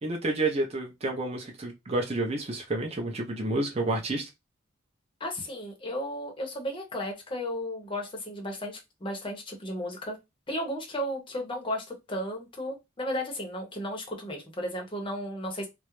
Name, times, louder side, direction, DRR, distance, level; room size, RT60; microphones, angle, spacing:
voice 1, 0.0-4.3, right 2 dB, 30° right, 0.5 m, -30 dB
voice 2, 5.2-10.2 10.5-15.7, equal, 25° left, 0.7 m, -34 dB
2.3 x 2.0 x 2.9 m
head